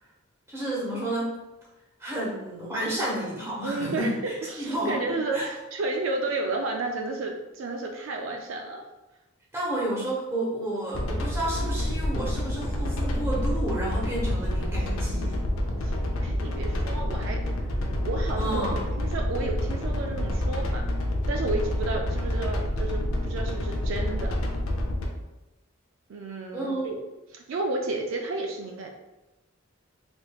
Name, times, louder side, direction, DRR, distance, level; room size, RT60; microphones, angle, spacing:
voice 1, 0.5-1.4 2.0-5.5 9.5-15.4 18.4-18.8 26.5-26.8, right 1 dB, 10° right, -6 dB, 0.9 m, -31 dB
voice 2, 3.6-8.9 15.8-15.9 16.2-17.4 18.0-18.7 19.0-20.9 21.3-24.3 26.1-27.0 27.3-28.9, right 3 dB, 65° right, 2 dB, 0.3 m, -32 dB
sound 1, 10.9-25.0, left 1 dB, 75° left, 0.5 m, -28 dB
3.4 x 3.0 x 2.3 m, 1.0 s
head